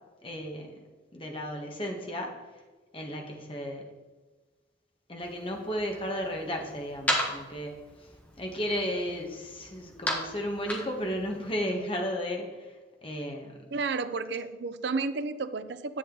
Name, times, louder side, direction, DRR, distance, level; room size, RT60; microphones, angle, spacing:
voice 1, 0.2-2.3 2.9-3.9 5.1-7.7 8.4-12.7 13.0-13.6, equal, 30° left, 2 dB, 1.4 m, -34 dB
sound 1, 5.2-11.6, equal, 10° left, 1.3 m, -36 dB
voice 2, 13.7-16.0, right 4 dB, 60° right, 13 dB, 0.5 m, -32 dB
11.0 x 8.1 x 3.9 m, 1.3 s
head